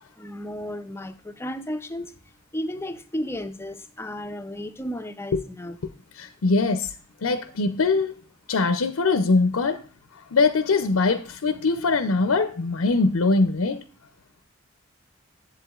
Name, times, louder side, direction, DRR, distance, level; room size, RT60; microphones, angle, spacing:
voice 1, 0.2-2.1 2.5-5.8, equal, 10° left, 0.5 m, -33 dB
voice 2, 6.2-6.9 7.2-8.1 8.5-9.8 10.1-13.8, left 3 dB, 85° left, 0.6 m, -22 dB
11.0 x 8.0 x 2.4 m
head